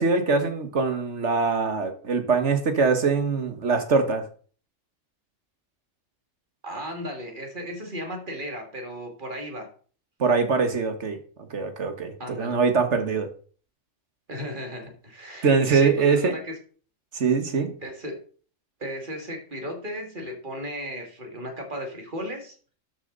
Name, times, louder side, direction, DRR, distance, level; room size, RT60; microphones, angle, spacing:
voice 1, 0.0-4.2 10.2-11.2 11.5-13.3 15.4-16.3 17.1-17.7, right 4 dB, 60° right, 7 dB, 1.8 m, -23 dB
voice 2, 6.6-9.7 12.2-12.6 14.3-16.6 17.8-18.2 18.8-22.7, equal, 40° right, 3 dB, 2.5 m, -35 dB
12.5 x 6.8 x 4.0 m, 0.42 s
omnidirectional pair, 1.3 m